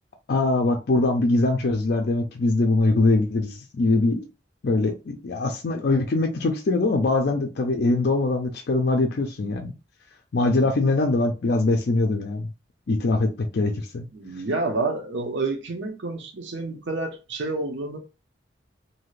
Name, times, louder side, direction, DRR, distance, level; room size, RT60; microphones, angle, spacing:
voice 1, 0.3-4.3 4.6-9.7 10.3-12.5 12.9-14.0, left 2 dB, 55° left, 0.4 m, -22 dB
voice 2, 14.1-18.0, right 3 dB, 70° right, 0.6 m, -29 dB
2.7 x 2.4 x 3.1 m
head